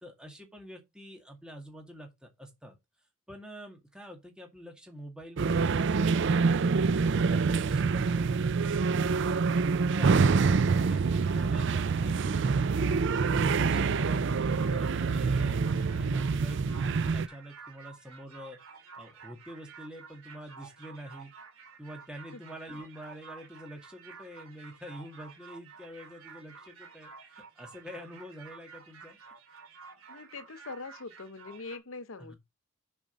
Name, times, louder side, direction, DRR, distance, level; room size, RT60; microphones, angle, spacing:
voice 1, 0.0-2.8 3.3-6.6 10.0-12.5 12.7-15.6 15.9-18.6 19.0-21.3 21.8-29.2 32.2-32.4, equal, 5° right, 2.0 m, -46 dB
sound 1, 5.4-17.3, right 4 dB, 55° right, 0.4 m, -26 dB
sound 2, 13.0-31.8, right 5 dB, 80° right, 2.3 m, -51 dB
voice 2, 30.1-32.4, left 3 dB, 65° left, 0.8 m, -43 dB
7.0 x 5.2 x 5.2 m
head